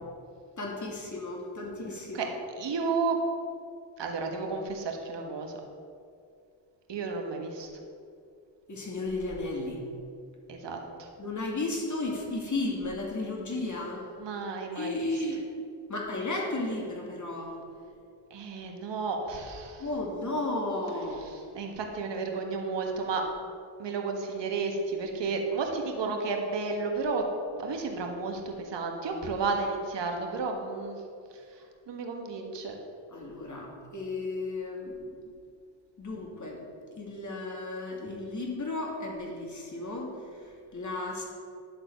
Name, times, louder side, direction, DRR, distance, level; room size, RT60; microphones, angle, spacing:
voice 1, 0.6-2.3 8.7-9.8 11.2-14.0 14.7-15.4 15.9-17.5 19.8-21.3 33.1-35.4 36.0-36.6 37.0-40.1 40.4-41.2, left 2 dB, 40° left, -1 dB, 2.5 m, -34 dB
voice 2, 2.6-3.2 4.0-5.6 6.9-7.7 10.5-11.1 13.5-13.6 14.2-15.1 18.3-19.9 21.2-23.2 23.8-27.3 27.6-31.0 31.3-32.8, right 4 dB, 65° right, 2 dB, 1.5 m, -32 dB
11.0 x 4.0 x 6.8 m, 2.4 s
supercardioid pair, 55°, 46 cm